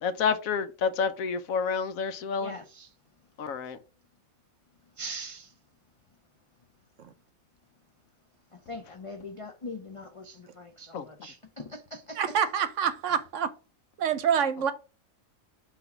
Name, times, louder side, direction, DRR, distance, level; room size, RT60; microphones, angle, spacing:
voice 1, 0.0-2.6 3.4-3.8 10.9-11.1, left 6 dB, 80° left, 1.2 m, -29 dB
voice 2, 2.4-2.9 5.0-5.5 8.5-12.5, left 1 dB, 50° left, 0.4 m, -42 dB
voice 3, 12.2-13.5 14.0-14.7, right 7 dB, 70° right, 1.0 m, -26 dB
5.8 x 2.9 x 5.6 m
omnidirectional pair, 1.4 m